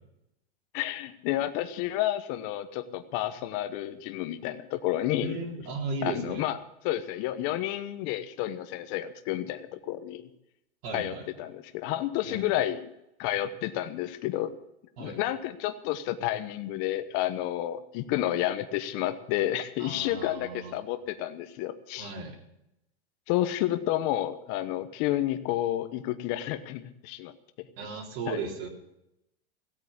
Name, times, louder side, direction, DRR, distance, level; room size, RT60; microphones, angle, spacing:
voice 1, 0.7-5.4 6.0-10.2 10.9-12.9 13.2-14.5 15.0-22.1 23.3-27.3 27.6-28.0 28.3-28.4, left 13 dB, 45° left, 9 dB, 1.1 m, -30 dB
voice 2, 5.2-6.5 10.8-11.3 12.3-12.4 15.0-15.2 19.8-20.7 21.9-22.4 27.8-28.7, right 3 dB, 60° right, -2 dB, 3.9 m, -36 dB
16.5 x 8.8 x 8.4 m, 0.84 s
supercardioid pair, 140°, 32 cm